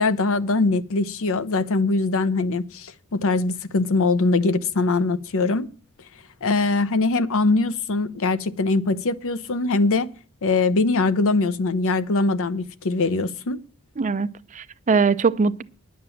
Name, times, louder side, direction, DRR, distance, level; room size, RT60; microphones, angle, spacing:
voice 1, 0.0-5.7 6.4-10.1 10.4-13.6, left 3 dB, 65° left, 0.7 m, -22 dB
voice 2, 14.0-15.6, right 4 dB, 35° right, 0.5 m, -22 dB
10.5 x 7.4 x 7.0 m
head